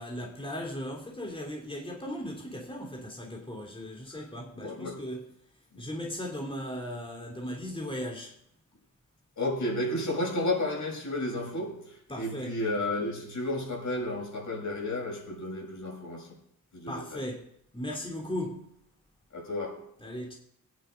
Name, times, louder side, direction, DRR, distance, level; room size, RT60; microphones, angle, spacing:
voice 1, 0.0-5.3 5.8-8.3 12.1-12.6 16.9-18.7 20.0-20.3, equal, 15° left, 3.1 m, -37 dB
voice 2, 4.5-5.1 5.7-5.8 9.4-16.4 16.7-17.2 19.3-19.8, left 1 dB, 65° left, 7.1 m, -32 dB
21.5 x 9.6 x 5.1 m
cardioid pair, 80°, 32 cm